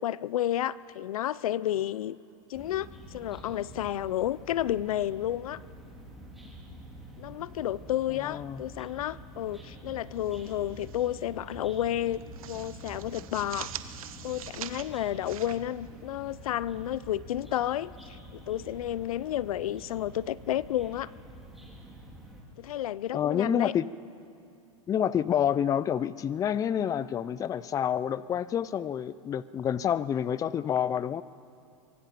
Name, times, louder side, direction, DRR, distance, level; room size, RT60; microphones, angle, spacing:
voice 1, 0.0-2.2 2.5-5.6 7.2-12.2 12.5-13.7 14.2-21.1 22.6-23.7, left 12 dB, 85° left, 20 dB, 0.6 m, -31 dB
sound 1, 2.5-22.4, equal, ahead, 3.9 m, -47 dB
voice 2, 8.1-8.6 23.1-23.9 24.9-31.2, left 9 dB, 20° left, 17 dB, 0.5 m, -28 dB
sound 2, 10.2-11.1 11.4-11.6 12.0-16.4, right 11 dB, 80° right, 1.1 m, -44 dB
24.0 x 22.0 x 5.9 m, 2.6 s
supercardioid pair, 130°, 18 cm